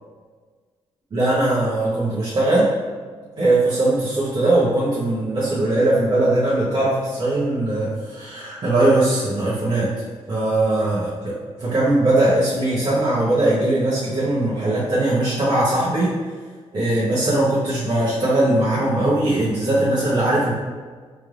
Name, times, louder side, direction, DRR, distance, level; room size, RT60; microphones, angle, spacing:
voice 1, 1.1-2.7 3.4-9.9 10.3-16.1 16.7-20.5, right 2 dB, 45° right, -10 dB, 1.0 m, -20 dB
4.3 x 3.3 x 2.5 m, 1.5 s
cardioid pair, 110°, 11 cm